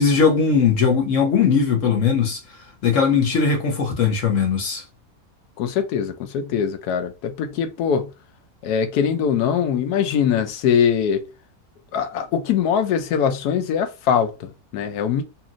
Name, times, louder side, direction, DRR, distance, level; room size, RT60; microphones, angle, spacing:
voice 1, 0.0-2.4 2.8-4.8, left 5 dB, 65° left, 1.0 m, -19 dB
voice 2, 5.6-8.1 8.6-11.2 11.9-15.2, left 7 dB, 90° left, 1.1 m, -22 dB
2.8 x 2.7 x 2.4 m
omnidirectional pair, 1.6 m